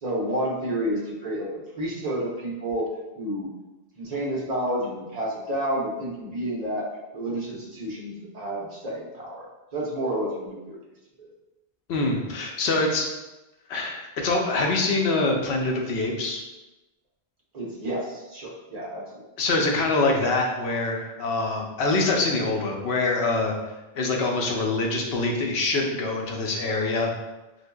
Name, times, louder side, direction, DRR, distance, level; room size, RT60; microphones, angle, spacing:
voice 1, 0.0-2.9 3.2-3.5 4.0-9.5 9.7-10.8 11.2-11.3 17.5-19.2, right 1 dB, 40° right, -4 dB, 0.9 m, -30 dB
voice 2, 11.9-13.1 13.7-16.5 19.4-23.5 23.9-27.1, left 3 dB, 85° left, 0 dB, 0.9 m, -24 dB
4.3 x 2.6 x 2.3 m, 1.0 s
omnidirectional pair, 1.1 m